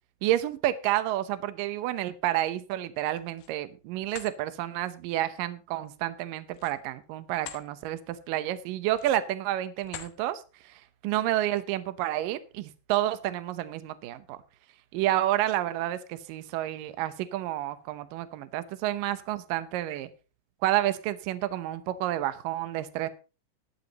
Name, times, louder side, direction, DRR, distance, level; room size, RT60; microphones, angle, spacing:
voice 1, 0.2-14.4 14.9-20.1 20.6-23.1, right 14 dB, 75° right, 12 dB, 2.1 m, -30 dB
sound 1, 3.0-3.6 4.0-4.4 6.5-7.7 8.1-8.3 8.9-9.3 9.8-10.2, left 11 dB, 70° left, 2.7 m, -44 dB
17.5 x 11.0 x 2.9 m, 0.32 s
omnidirectional pair, 4.9 m